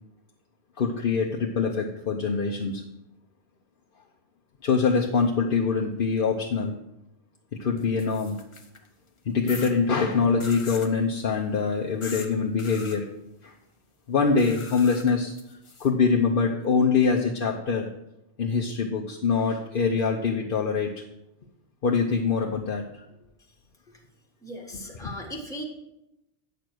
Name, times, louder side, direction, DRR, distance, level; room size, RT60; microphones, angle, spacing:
voice 1, 0.8-2.8 4.6-6.7 7.5-8.4 9.2-13.1 13.4-13.5 14.1-17.9 18.4-21.0 21.8-22.8 25.0-25.1, left 5 dB, 55° left, 0 dB, 1.0 m, -24 dB
sound 1, 7.8-8.9 9.5-9.7 10.4-10.9 12.0-12.3 12.6-13.0 14.4-15.9, left 3 dB, 30° left, 0.9 m, -41 dB
voice 2, 24.4-25.6, left 1 dB, 5° left, 0 dB, 1.5 m, -37 dB
9.0 x 6.8 x 6.1 m, 0.89 s
omnidirectional pair, 1.1 m